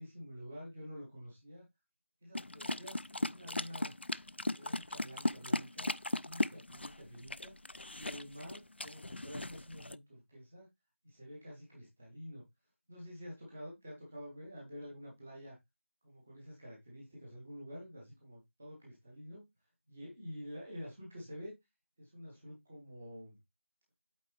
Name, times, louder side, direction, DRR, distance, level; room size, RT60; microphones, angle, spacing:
voice 1, 0.0-1.6 2.2-3.9 4.5-7.5 7.9-10.7 11.0-12.5 12.9-15.6 16.0-19.5 19.9-21.5 22.0-23.4, equal, 5° right, -2 dB, 0.6 m, -49 dB
sound 1, 2.3-10.0, left 2 dB, 55° left, 0.3 m, -37 dB
8.4 x 3.4 x 4.5 m, 0.19 s
figure-of-eight pair, 170°, 7 cm